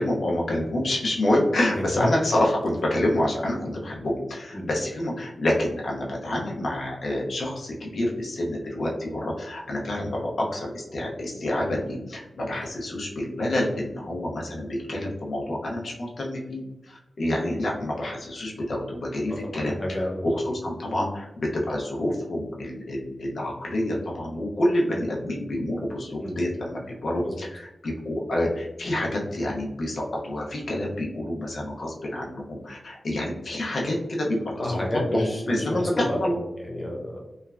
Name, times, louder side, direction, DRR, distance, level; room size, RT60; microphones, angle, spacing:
voice 1, 0.0-34.8 35.1-36.4, left 1 dB, 65° left, -2 dB, 0.5 m, -28 dB
voice 2, 1.7-2.1 4.5-4.7 19.3-20.3 26.2-26.4 27.2-27.4 34.6-37.2, left 1 dB, 20° left, -2 dB, 0.6 m, -30 dB
3.1 x 2.1 x 2.3 m, 0.97 s
wide cardioid pair, 135°, 0 cm